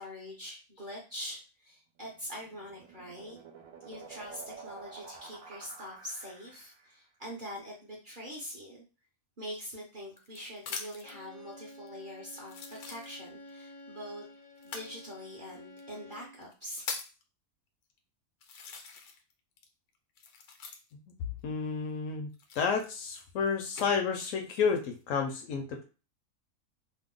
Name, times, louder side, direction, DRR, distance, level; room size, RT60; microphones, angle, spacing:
voice 1, 0.0-3.4 3.8-8.8 9.4-14.2 14.6-16.8, equal, 45° right, -3 dB, 0.7 m, -44 dB
sound 1, 2.2-7.0, right 5 dB, 70° right, 1.0 m, -50 dB
sound 2, 9.5-11.2 11.9-12.0 12.4-13.5 14.6-14.9 15.8-15.9 16.4-17.2 17.9-18.0 18.4-19.3 19.6-21.1 22.3-23.9 24.5-25.0, left 5 dB, 90° left, 1.2 m, -43 dB
Bowed string instrument, 11.0-16.5, left 1 dB, 50° left, 0.5 m, -51 dB
voice 2, 21.4-22.3 22.6-25.8, left 5 dB, 70° left, 4 dB, 0.9 m, -31 dB
2.8 x 2.0 x 3.7 m, 0.33 s
omnidirectional pair, 1.6 m